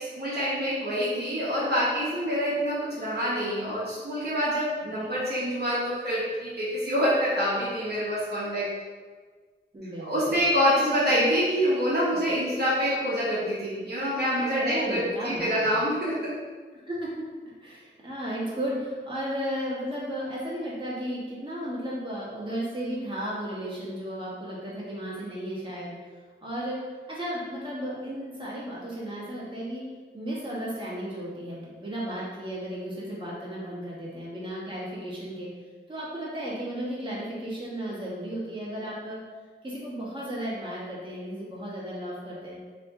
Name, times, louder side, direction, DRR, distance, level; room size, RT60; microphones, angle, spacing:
voice 1, 0.0-8.7 10.0-16.3, equal, 55° right, -8 dB, 1.0 m, -26 dB
voice 2, 9.7-10.4 10.8-11.2 14.6-15.8 16.9-17.2 17.6-26.0 26.4-26.8 27.1-29.8 30.1-35.5 35.9-39.2 39.6-42.6, equal, 25° right, -7 dB, 1.4 m, -34 dB
3.2 x 3.0 x 3.6 m, 1.5 s
wide cardioid pair, 65°, 20 cm